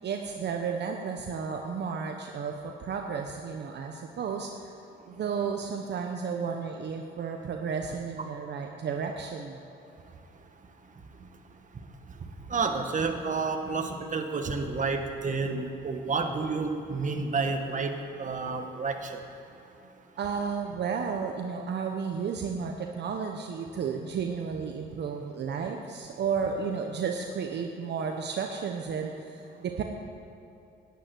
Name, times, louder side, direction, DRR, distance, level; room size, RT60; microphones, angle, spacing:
voice 1, 0.0-4.7 5.0-9.6 20.2-29.8, right 6 dB, 60° right, 3 dB, 1.0 m, -33 dB
voice 2, 12.2-19.2, right 4 dB, 40° right, 5 dB, 1.5 m, -30 dB
11.0 x 9.4 x 9.3 m, 2.8 s
cardioid pair, 90°, 20 cm